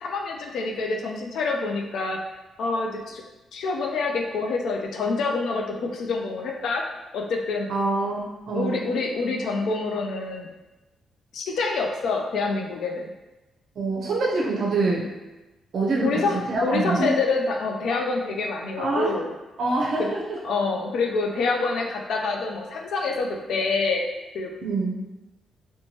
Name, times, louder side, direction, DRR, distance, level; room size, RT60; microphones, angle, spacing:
voice 1, 0.0-2.2 2.6-3.2 3.5-6.8 7.1-7.7 8.5-10.5 11.3-13.1 16.0-19.3 20.0-20.1 20.4-24.0 24.3-24.5, left 3 dB, 70° left, 1 dB, 0.3 m, -26 dB
voice 2, 7.7-8.8 13.8-15.1 15.7-17.1 18.8-19.2 19.6-20.4 24.6-25.0, right 3 dB, 55° right, -3 dB, 0.5 m, -25 dB
3.0 x 2.1 x 2.7 m, 1.1 s
cardioid pair, 140°, 0 cm